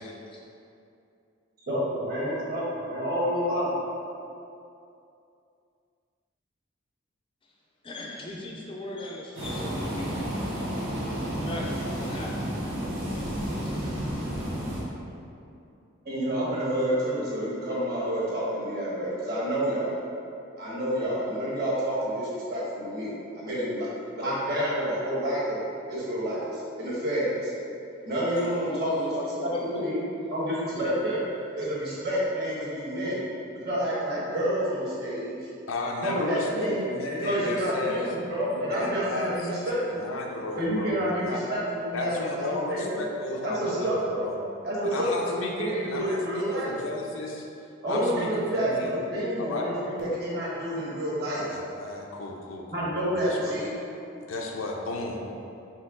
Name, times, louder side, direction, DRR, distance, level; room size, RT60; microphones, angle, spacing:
voice 1, 1.7-3.7 16.0-19.9 20.6-23.9 24.1-25.6 25.9-26.4 26.8-27.5 28.0-28.9 29.4-30.0 30.3-31.2 31.5-33.3 33.6-35.5 36.0-36.9 37.2-39.8 40.6-43.0 43.4-44.2 44.6-46.7 47.8-51.4 52.7-53.8, equal, 50° right, -7 dB, 1.2 m, -29 dB
voice 2, 7.8-10.8 11.3-12.3 13.6-13.7 28.6-29.9 30.7-31.0, left 1 dB, 25° left, -2 dB, 0.3 m, -38 dB
sound 1, 9.3-14.8, equal, 80° right, 1.2 m, -31 dB
voice 3, 35.7-38.1 38.5-39.6 40.0-41.4 41.9-44.3 44.8-47.5 47.9-48.9 49.4-49.7 51.2-52.9 53.2-53.5 54.3-55.2, left 2 dB, 85° left, 0 dB, 0.6 m, -34 dB
4.3 x 3.0 x 3.7 m, 2.6 s
head